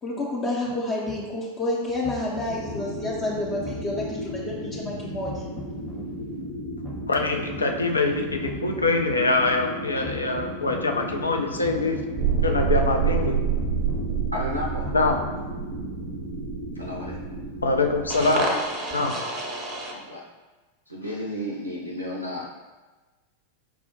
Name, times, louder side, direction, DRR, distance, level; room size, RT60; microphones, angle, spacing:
voice 1, 0.0-5.4, left 2 dB, 25° left, -5 dB, 0.5 m, -29 dB
sound 1, 1.1-1.2 1.9-2.8 3.5-4.4 5.1-6.0 6.7-7.6 8.3-9.2 9.9-10.8 11.5-12.4 13.1-14.0 14.7-15.4, left 2 dB, ahead, 0.8 m, -41 dB
sound 2, 2.4-20.1, equal, 55° left, 0.8 m, -36 dB
voice 2, 7.1-12.0 12.4-13.3 14.9-15.2 17.6-18.5 18.9-19.1, left 3 dB, 80° left, 3 dB, 0.3 m, -24 dB
sound 3, 12.2-19.9, right 6 dB, 30° right, 0.5 m, -28 dB
voice 3, 14.3-14.9 16.7-17.2 19.9-20.2 20.9-22.5, left 1 dB, 85° right, -2 dB, 0.4 m, -32 dB
4.6 x 2.0 x 2.8 m, 1.2 s
figure-of-eight pair, 90°, 0 cm